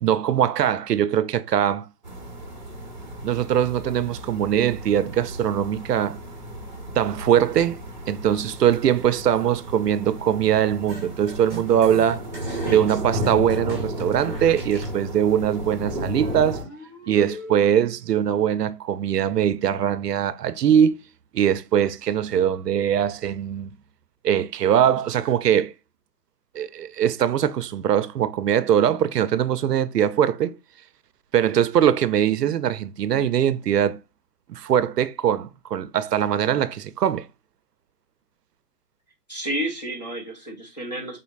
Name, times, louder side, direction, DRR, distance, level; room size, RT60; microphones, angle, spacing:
voice 1, 0.0-1.9 3.2-6.2 7.0-7.8 8.1-12.2 12.7-16.6 17.1-21.0 21.3-23.7 24.2-25.7 26.5-30.5 31.3-34.0 34.5-37.3, right 9 dB, 75° right, 0.5 m, -21 dB
sound 1, 2.0-16.6, equal, 30° right, 0.6 m, -34 dB
sound 2, 10.9-15.0, right 1 dB, 5° left, 1.3 m, -41 dB
voice 2, 12.5-12.9 39.3-41.2, right 1 dB, 25° left, 0.6 m, -31 dB
sound 3, 16.2-18.2, left 2 dB, 50° left, 2.5 m, -40 dB
4.0 x 3.1 x 2.2 m
hypercardioid pair, 170°, 48 cm